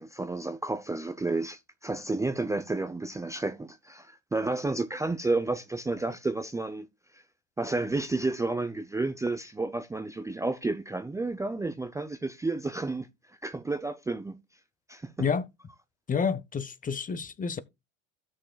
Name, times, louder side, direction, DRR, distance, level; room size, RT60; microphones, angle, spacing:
voice 1, 0.0-6.9 7.6-13.1 13.4-14.4 14.9-15.3, right 2 dB, 10° right, 0.6 m, -31 dB
voice 2, 16.1-17.6, left 6 dB, 20° left, 0.8 m, -29 dB
15.5 x 6.4 x 2.2 m
hypercardioid pair, 100°, 39 cm